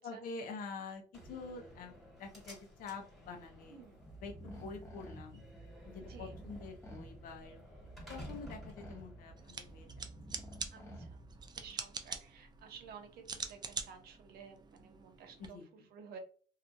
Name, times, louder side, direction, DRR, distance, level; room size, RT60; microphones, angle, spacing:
voice 1, 0.0-3.8 4.2-5.4 5.8-7.6 8.1-10.1 15.4-15.9, left 4 dB, 55° left, 3 dB, 0.6 m, -47 dB
Slam, 1.1-10.1, equal, ahead, 1.5 m, -55 dB
voice 2, 3.7-4.0 6.1-6.3 10.7-11.2 11.6-15.6 15.9-16.2, right 6 dB, 70° right, 5 dB, 0.7 m, -53 dB
sound 1, 4.0-11.7, right 1 dB, 15° left, 0.8 m, -51 dB
sound 2, 9.4-15.5, right 5 dB, 25° right, 0.4 m, -45 dB
2.7 x 2.3 x 2.5 m, 0.42 s
cardioid pair, 110°, 17 cm